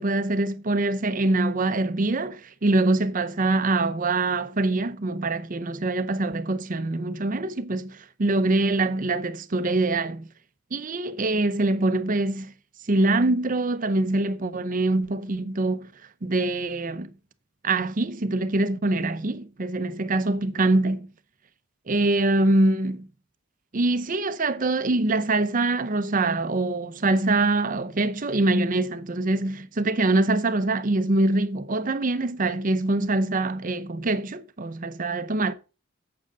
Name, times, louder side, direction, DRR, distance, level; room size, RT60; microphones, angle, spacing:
voice 1, 0.0-10.3 10.7-12.5 12.9-15.9 16.2-17.1 17.6-21.1 21.9-23.1 23.7-35.5, right 2 dB, 40° right, 0.6 m, -24 dB
8.9 x 7.7 x 3.9 m
head